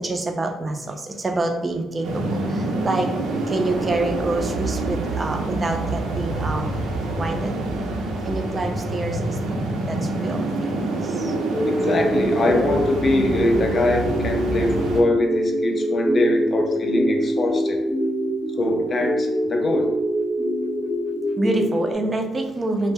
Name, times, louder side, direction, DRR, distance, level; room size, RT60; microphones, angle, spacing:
voice 1, 0.0-3.1 3.4-6.8 7.2-7.6 8.2-10.5 11.0-11.3 21.4-22.9, right 2 dB, 30° right, 5 dB, 0.4 m, -27 dB
sound 1, 2.0-15.0, right 2 dB, 85° right, 0.5 m, -26 dB
sound 2, 11.2-21.9, equal, 10° right, 0.8 m, -25 dB
voice 2, 11.7-17.8 18.6-19.9, left 2 dB, 45° left, 3 dB, 0.4 m, -23 dB
2.1 x 2.0 x 3.4 m, 0.99 s
cardioid pair, 90°, 0 cm